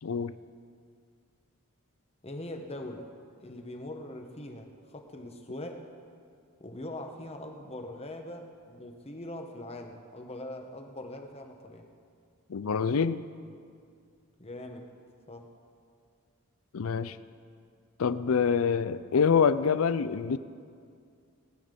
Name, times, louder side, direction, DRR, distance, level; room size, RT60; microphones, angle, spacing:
voice 1, 0.0-0.3 12.5-13.2 16.7-17.2 18.0-20.4, left 6 dB, 70° left, 15 dB, 0.5 m, -26 dB
voice 2, 2.2-3.1 3.4-5.8 6.6-11.9 14.4-14.8 15.3-15.5, left 1 dB, 30° left, 4 dB, 1.1 m, -42 dB
19.0 x 8.8 x 5.3 m, 2.3 s
head